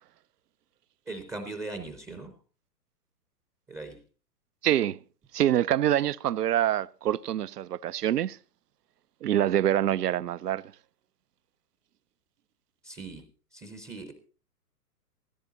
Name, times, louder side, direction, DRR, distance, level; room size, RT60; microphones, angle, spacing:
voice 1, 1.1-2.3 3.7-4.0 12.8-13.2 13.5-14.1, right 3 dB, 5° right, 0.6 m, -39 dB
voice 2, 4.6-5.0 5.3-8.4 9.2-10.6, right 11 dB, 75° right, 0.6 m, -25 dB
15.0 x 13.5 x 4.0 m
hypercardioid pair, 125°, 47 cm